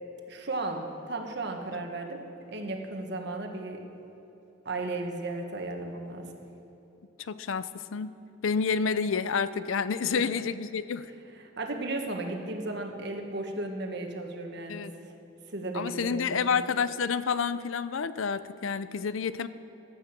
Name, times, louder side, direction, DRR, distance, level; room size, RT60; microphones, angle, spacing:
voice 1, 0.3-3.9 4.6-6.3 10.1-10.2 11.6-15.1 15.5-16.6, right 2 dB, 55° right, 3 dB, 1.5 m, -35 dB
voice 2, 7.2-8.2 8.4-11.1 14.7-14.9 15.7-19.5, left 5 dB, 80° left, 14 dB, 0.5 m, -29 dB
15.5 x 11.0 x 6.0 m, 3.0 s
head